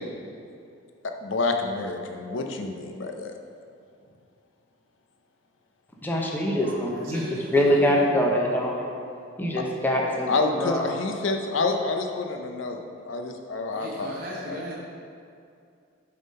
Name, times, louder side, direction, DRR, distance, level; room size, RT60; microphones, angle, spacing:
voice 1, 1.2-3.4 10.3-14.6, left 3 dB, 70° left, 4 dB, 0.6 m, -28 dB
voice 2, 6.0-7.2 7.5-8.9 9.4-10.9, equal, 10° left, -2 dB, 0.7 m, -24 dB
voice 3, 6.6-8.0 13.7-14.8, equal, 45° right, -5 dB, 1.0 m, -37 dB
7.7 x 3.7 x 5.3 m, 2.4 s
head